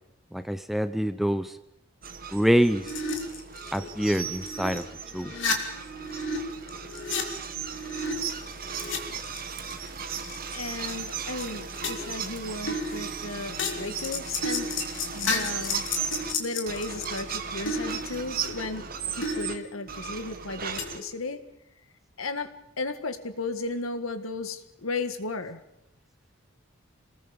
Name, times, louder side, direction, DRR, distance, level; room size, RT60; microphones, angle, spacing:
voice 1, 0.3-1.5 2.3-2.8 3.7-4.8 5.1-5.3, equal, ahead, 11 dB, 0.7 m, -25 dB
sound 1, 2.0-16.3 16.7-19.6 19.9-21.0, right 7 dB, 45° right, 1.6 m, -36 dB
sound 2, 2.8-4.8 5.1-6.4 6.7-9.0 9.2-9.9 10.2-11.1 11.4-11.5 11.8-12.2 12.7-17.2 17.7-18.8 19.2-20.1 20.8-21.1, left 3 dB, 65° left, 3.0 m, -33 dB
voice 2, 10.5-14.7 15.1-15.8 16.4-21.4 22.2-25.6, left 3 dB, 85° left, 9 dB, 1.9 m, -35 dB
27.5 x 20.0 x 5.3 m, 0.83 s
head